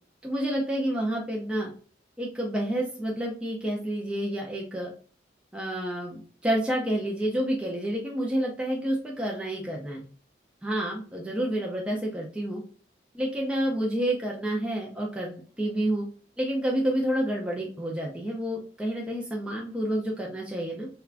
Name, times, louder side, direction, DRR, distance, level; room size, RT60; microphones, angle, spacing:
voice 1, 0.2-1.7 2.2-4.9 5.5-10.0 10.6-12.6 13.1-16.0 16.4-20.9, right 1 dB, 5° right, -2 dB, 0.4 m, -29 dB
3.5 x 2.2 x 2.4 m, 0.41 s
head